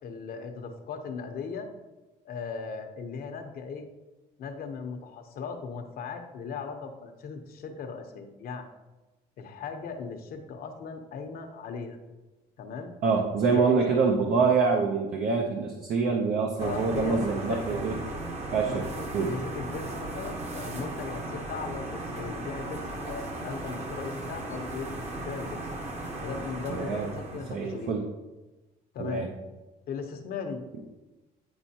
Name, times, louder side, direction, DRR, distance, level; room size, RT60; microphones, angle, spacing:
voice 1, 0.0-1.7 2.2-3.9 4.4-8.7 9.4-12.0 12.6-12.9 13.5-14.0 16.6-17.8 18.6-24.9 25.2-25.6 26.2-28.0 28.9-29.3 29.9-30.6, left 5 dB, 60° left, 5 dB, 0.9 m, -38 dB
voice 2, 13.0-18.0 18.5-18.9 19.1-19.4 26.7-28.0 29.0-29.3, right 4 dB, 65° right, 2 dB, 0.8 m, -26 dB
sound 1, 16.6-27.8, right 2 dB, 40° right, 1.1 m, -37 dB
9.6 x 4.4 x 2.9 m, 1.1 s
cardioid pair, 110°, 17 cm